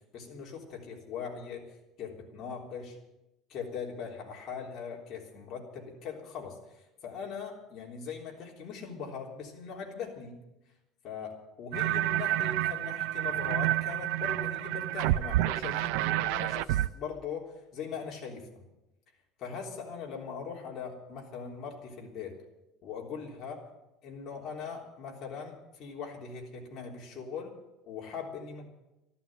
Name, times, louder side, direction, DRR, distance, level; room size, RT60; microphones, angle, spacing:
voice 1, 0.1-1.7 2.0-3.0 3.5-10.4 11.0-18.6 19.4-22.4 22.8-23.6 24.0-27.5 27.9-28.7, left 6 dB, 40° left, -1 dB, 3.5 m, -40 dB
sound 1, 11.7-16.9, right 14 dB, 75° right, 0.4 m, -29 dB
13.0 x 11.5 x 9.1 m, 0.95 s
cardioid pair, 170°, 0 cm